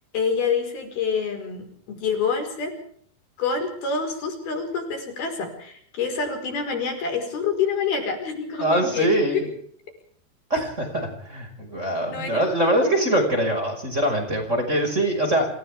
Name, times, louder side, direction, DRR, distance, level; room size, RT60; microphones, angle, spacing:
voice 1, 0.1-2.8 3.4-9.5 12.1-12.9, left 5 dB, 70° left, 4 dB, 6.8 m, -27 dB
voice 2, 8.6-9.4 10.5-15.5, right 1 dB, 15° right, 3 dB, 5.9 m, -23 dB
28.5 x 27.5 x 3.7 m, 0.63 s
omnidirectional pair, 4.5 m